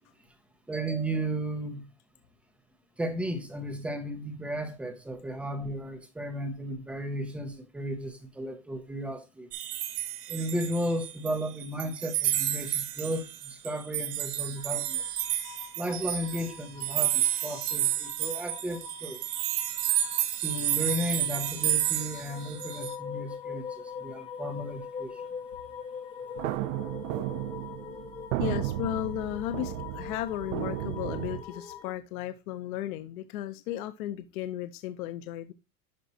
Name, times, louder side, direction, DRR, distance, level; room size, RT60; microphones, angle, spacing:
voice 1, 0.7-1.9 3.0-9.5 10.3-15.0 15.8-19.2 20.4-25.3, equal, 5° right, 0.3 m, -34 dB
sound 1, 9.5-11.3 11.6-22.9, right 12 dB, 80° right, 2.0 m, -30 dB
sound 2, 14.6-31.9, left 7 dB, 15° left, 0.9 m, -43 dB
sound 3, 26.4-31.4, right 15 dB, 60° right, 0.6 m, -34 dB
voice 2, 28.4-35.5, left 13 dB, 65° left, 0.9 m, -35 dB
11.5 x 4.2 x 2.7 m
supercardioid pair, 155°, 46 cm